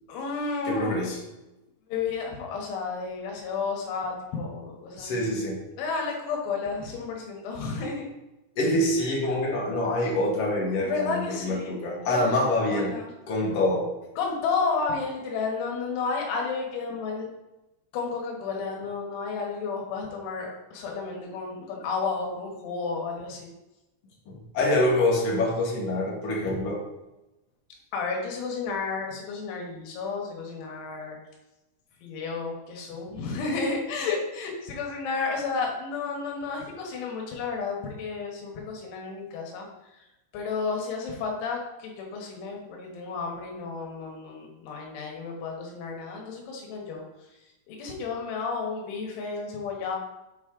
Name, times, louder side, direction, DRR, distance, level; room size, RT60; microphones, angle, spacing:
voice 1, 0.1-1.1 1.9-5.2 5.8-8.0 10.7-11.7 12.1-12.3 12.7-13.1 14.2-17.3 17.9-23.5 27.9-31.2 32.0-39.7 40.3-47.1 47.7-50.0, left 4 dB, 80° left, 0 dB, 3.8 m, -32 dB
voice 2, 0.6-1.2 4.9-5.6 8.5-12.9 13.3-13.9 24.3-26.8, left 1 dB, 55° left, -3 dB, 1.7 m, -25 dB
8.1 x 4.3 x 4.9 m, 0.97 s
omnidirectional pair, 5.5 m